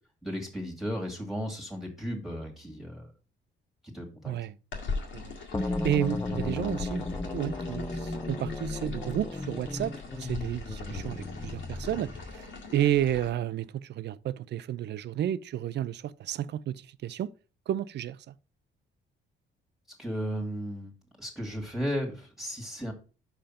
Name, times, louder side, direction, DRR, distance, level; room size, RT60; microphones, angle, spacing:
voice 1, 0.2-3.1 3.8-4.3 20.0-20.9 21.2-22.9, equal, ahead, 1.9 m, -35 dB
voice 2, 4.3-4.6 5.1-5.3 5.6-17.3 17.7-18.3, right 11 dB, 60° right, 0.5 m, -32 dB
sound 1, 4.7-13.3, left 4 dB, 80° left, 1.9 m, -41 dB
sound 2, 5.5-12.4, left 2 dB, 15° left, 0.7 m, -34 dB
5.7 x 5.1 x 5.6 m
cardioid pair, 90°, 20 cm